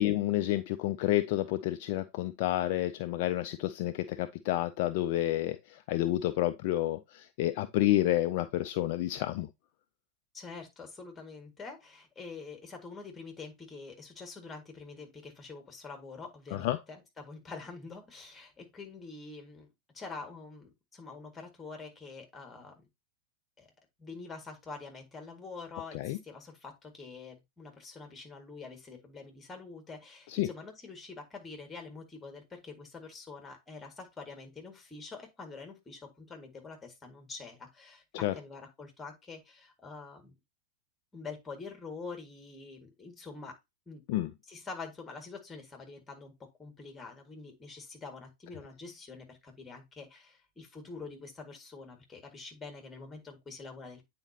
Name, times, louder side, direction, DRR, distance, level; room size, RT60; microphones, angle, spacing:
voice 1, 0.0-9.5 16.5-16.8 25.9-26.2 30.3-30.5 38.2-38.3 44.1-44.3, left 15 dB, 50° left, 0.4 m, -29 dB
voice 2, 10.3-19.7 19.9-22.7 23.6-23.7 24.0-40.3 41.1-43.6 43.9-44.0 44.5-54.1, left 4 dB, 15° left, 1.9 m, -46 dB
8.8 x 4.2 x 2.8 m
figure-of-eight pair, 90°, 0 cm